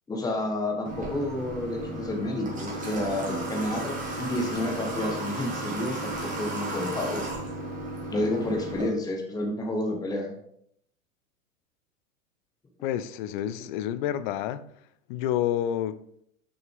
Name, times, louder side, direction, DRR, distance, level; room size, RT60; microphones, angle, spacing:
voice 1, 0.1-7.3 8.1-10.3, left 1 dB, 10° left, 1.0 m, -30 dB
Water / Water tap faucet, 0.9-8.9, right 2 dB, 20° right, 2.0 m, -34 dB
voice 2, 12.8-14.6 15.1-16.0, left 11 dB, 40° left, 0.5 m, -29 dB
6.2 x 6.0 x 3.5 m
figure-of-eight pair, 100°, 41 cm